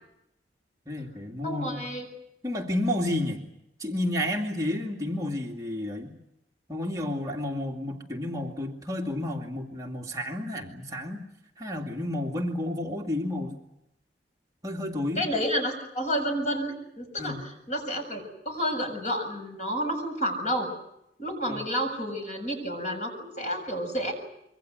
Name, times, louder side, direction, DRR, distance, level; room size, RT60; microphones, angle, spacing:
voice 1, 0.9-1.8 2.4-3.4 3.8-6.2 6.7-11.2 11.6-13.6 14.6-15.3 17.2-17.4 21.5-21.6, left 1 dB, 20° right, -1 dB, 2.3 m, -31 dB
voice 2, 1.4-2.1 15.2-17.4 17.7-20.7 21.2-24.1, equal, 40° left, 4 dB, 7.3 m, -30 dB
26.0 x 24.0 x 7.9 m, 0.82 s
head